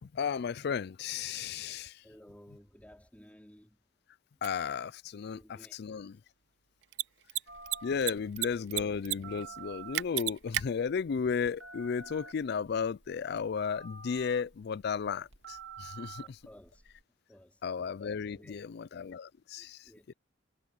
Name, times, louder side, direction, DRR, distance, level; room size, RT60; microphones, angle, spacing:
voice 1, 0.0-1.9 4.4-5.4 5.8-6.1 7.8-16.4 17.6-19.8 20.1-20.2, left 6 dB, 60° left, 0.4 m, -34 dB
voice 2, 2.0-3.8 5.3-5.9 16.2-16.9 17.3-17.6 18.1-18.7 19.6-20.1, equal, 10° left, 4.1 m, -56 dB
Mechanisms, 4.4-4.5 6.8-7.0 7.3-7.4 7.7-8.5 8.7-9.2 9.4-9.5 9.9-10.6, right 16 dB, 65° right, 0.4 m, -31 dB
Telephone, 7.5-17.0, right 5 dB, 85° right, 2.0 m, -50 dB
head